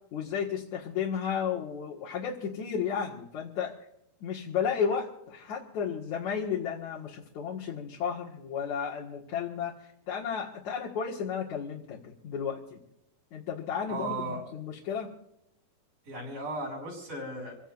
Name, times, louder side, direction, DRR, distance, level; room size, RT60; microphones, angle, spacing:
voice 1, 0.1-3.7 4.2-9.7 10.1-12.8 13.3-15.1, left 7 dB, 55° left, -5 dB, 2.7 m, -33 dB
voice 2, 13.9-14.4 16.1-17.6, right 2 dB, 50° right, -2 dB, 7.9 m, -36 dB
28.5 x 16.5 x 2.6 m, 0.77 s
omnidirectional pair, 4.7 m